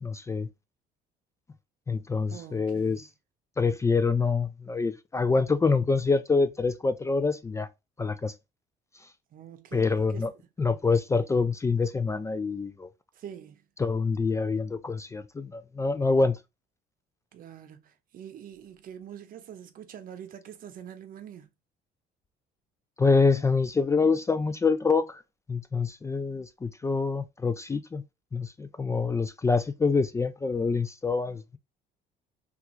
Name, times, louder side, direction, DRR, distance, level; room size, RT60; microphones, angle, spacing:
voice 1, 0.0-0.5 1.9-3.1 3.6-7.7 8.0-8.3 9.7-10.3 10.6-12.9 13.8-16.4 23.0-25.2 25.5-28.0 28.3-31.6, left 4 dB, 15° left, 0.3 m, -26 dB
voice 2, 2.3-3.1 9.3-10.3 13.1-13.6 17.3-21.5, right 9 dB, 55° right, 0.7 m, -45 dB
3.4 x 2.5 x 3.0 m
cardioid pair, 110°, 17 cm